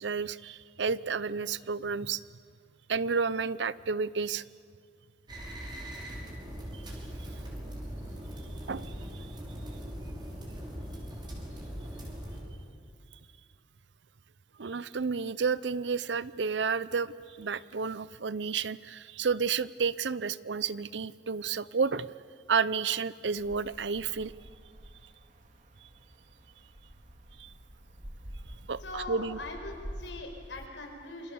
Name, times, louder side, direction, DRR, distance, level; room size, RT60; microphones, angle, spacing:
voice 1, 0.0-2.2 2.9-4.4 6.7-6.8 8.7-9.3 14.6-22.1 22.5-24.3 27.4-27.5 28.7-29.4, right 5 dB, 70° right, 18 dB, 0.6 m, -31 dB
sound 1, 5.3-12.4, equal, 25° right, 5.7 m, -40 dB
sound 2, 23.4-30.7, equal, 45° right, 2.1 m, -47 dB
voice 2, 28.8-31.3, left 2 dB, 90° left, 3 dB, 5.2 m, -41 dB
27.5 x 26.0 x 7.1 m, 2.2 s
head